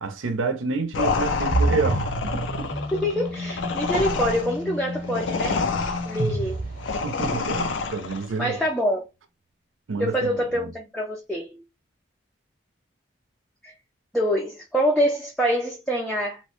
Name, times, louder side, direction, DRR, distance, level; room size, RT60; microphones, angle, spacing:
voice 1, 0.0-2.7 7.0-8.6 9.9-10.7, right 4 dB, 85° right, 0.6 m, -29 dB
sound 1, 0.9-8.3, left 4 dB, 75° left, 0.4 m, -28 dB
sound 2, 1.5-7.5, right 1 dB, 45° right, 0.8 m, -29 dB
voice 2, 2.9-5.6 6.1-6.6 8.4-9.0 10.0-11.6 13.6-13.7 14.1-16.4, equal, ahead, 0.4 m, -25 dB
2.9 x 2.1 x 2.9 m
head